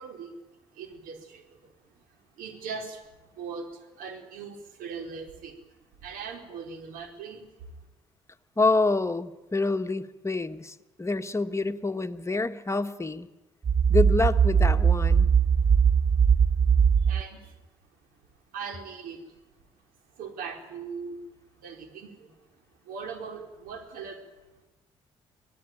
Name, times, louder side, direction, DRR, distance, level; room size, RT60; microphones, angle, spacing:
voice 1, 0.0-1.7 2.4-5.6 6.0-7.5 15.6-16.2 16.7-17.6 18.5-19.4 20.1-21.2 21.5-22.3 22.8-24.3, right 5 dB, 70° right, 4 dB, 4.3 m, -40 dB
voice 2, 8.6-13.3 13.9-15.3, left 3 dB, 20° left, 8 dB, 1.6 m, -27 dB
sound 1, 13.6-17.2, right 7 dB, 30° right, 0.7 m, -20 dB
25.0 x 18.5 x 9.1 m, 1.1 s
hypercardioid pair, 50°, 15 cm